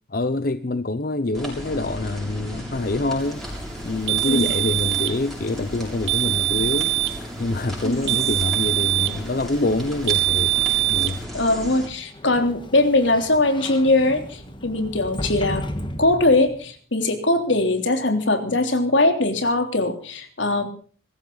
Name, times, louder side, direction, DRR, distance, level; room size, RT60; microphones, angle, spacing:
voice 1, 0.1-3.5 3.8-11.3, left 2 dB, 50° left, 0.7 m, -26 dB
sound 1, 1.3-11.9, equal, ahead, 7.2 m, -35 dB
sound 2, 4.1-5.2 6.1-7.2 8.1-9.2 10.1-11.2, right 17 dB, 60° right, 1.0 m, -22 dB
voice 2, 4.2-4.6 7.8-8.2 11.3-15.6 16.0-20.7, left 2 dB, 75° left, 3.3 m, -21 dB
Sliding door, 12.0-16.7, left 1 dB, 25° left, 1.7 m, -34 dB
23.0 x 14.5 x 4.0 m
head